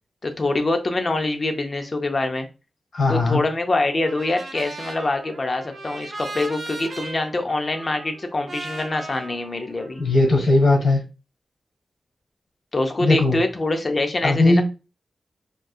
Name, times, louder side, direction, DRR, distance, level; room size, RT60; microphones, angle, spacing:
voice 1, 0.2-2.5 3.1-10.0 12.7-14.6, left 2 dB, 35° left, 6 dB, 0.5 m, -24 dB
voice 2, 2.9-3.4 10.0-11.0 13.0-13.4 14.2-14.6, left 2 dB, 80° left, 1 dB, 1.3 m, -18 dB
Trumpet, 4.0-10.3, right 2 dB, 50° right, 0.9 m, -37 dB
3.6 x 2.6 x 2.3 m, 0.30 s
wide cardioid pair, 170°, 0 cm